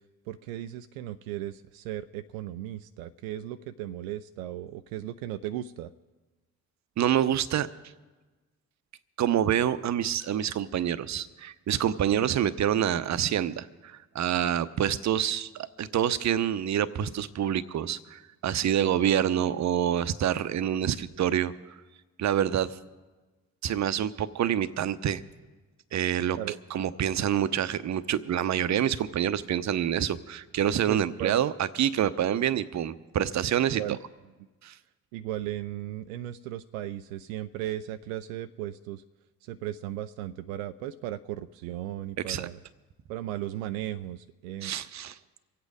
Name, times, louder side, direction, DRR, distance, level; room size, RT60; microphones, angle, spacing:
voice 1, 0.3-5.9 26.4-26.6 30.9-31.4 33.7-34.0 35.1-39.0 39.4-42.6 43.1-44.7, right 13 dB, 75° right, 10 dB, 0.5 m, -36 dB
voice 2, 7.0-7.7 9.2-21.5 22.2-22.8 23.6-25.2 25.9-26.4 26.7-33.8 34.6-34.7 42.3-42.5 44.6-45.2, right 10 dB, 45° right, 15 dB, 0.8 m, -27 dB
24.5 x 8.3 x 4.9 m, 1.2 s
figure-of-eight pair, 45°, 41 cm